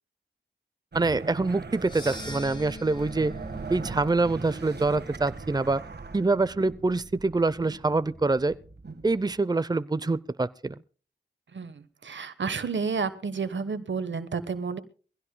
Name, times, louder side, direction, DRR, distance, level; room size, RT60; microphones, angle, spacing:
voice 1, 0.9-3.3 3.7-5.9 6.1-8.6 9.0-10.8, right 3 dB, 20° right, 0.6 m, -25 dB
sound 1, 0.9-9.3, right 4 dB, 65° right, 1.6 m, -41 dB
sound 2, 1.7-6.1, equal, 25° left, 3.3 m, -44 dB
voice 2, 11.5-14.8, right 5 dB, 85° right, 1.2 m, -31 dB
23.0 x 16.5 x 2.3 m
cardioid pair, 45°, 19 cm